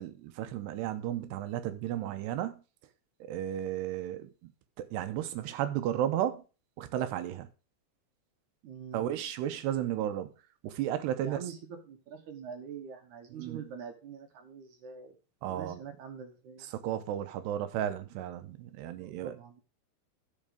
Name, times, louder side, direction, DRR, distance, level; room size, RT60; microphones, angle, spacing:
voice 1, 0.0-2.6 3.3-4.3 4.8-6.4 6.8-7.5 8.9-10.3 10.6-11.4 13.4-13.6 15.4-15.8 16.7-19.4, right 11 dB, 85° right, 3.0 m, -33 dB
voice 2, 8.6-9.1 11.2-15.2 15.4-16.7 19.0-19.6, right 7 dB, 65° right, 2.0 m, -45 dB
13.0 x 5.1 x 5.0 m
omnidirectional pair, 4.8 m